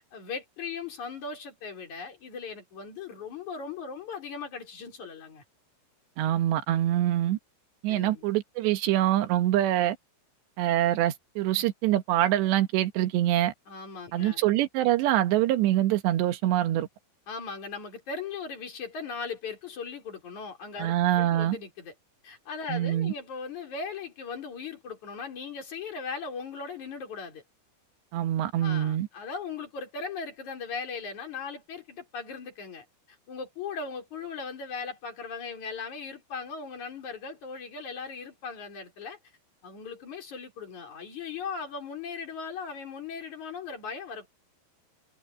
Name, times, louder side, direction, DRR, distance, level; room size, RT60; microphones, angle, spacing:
voice 1, 0.0-5.4 7.9-8.3 13.7-14.4 17.3-21.9 22.2-27.4 28.6-32.9 33.3-39.2 39.6-44.3, left 5 dB, 45° left, 5.6 m, -38 dB
voice 2, 6.2-7.4 7.8-10.0 10.6-13.5 14.1-16.9 20.8-21.6 22.7-23.1 28.1-29.1, right 13 dB, 75° right, 3.6 m, -25 dB
omnidirectional pair, 5.1 m